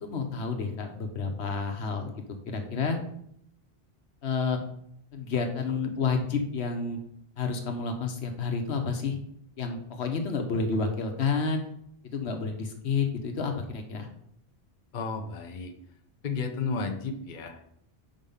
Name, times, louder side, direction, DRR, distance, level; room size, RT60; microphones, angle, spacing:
voice 1, 0.0-2.1 2.5-3.0 4.2-4.6 5.1-7.0 7.4-9.2 9.6-11.6 12.1-14.1, left 5 dB, 85° left, 5 dB, 1.2 m, -30 dB
voice 2, 14.9-15.7 16.2-17.7, left 4 dB, 50° left, 5 dB, 0.8 m, -33 dB
5.2 x 5.0 x 5.5 m, 0.70 s
omnidirectional pair, 1.1 m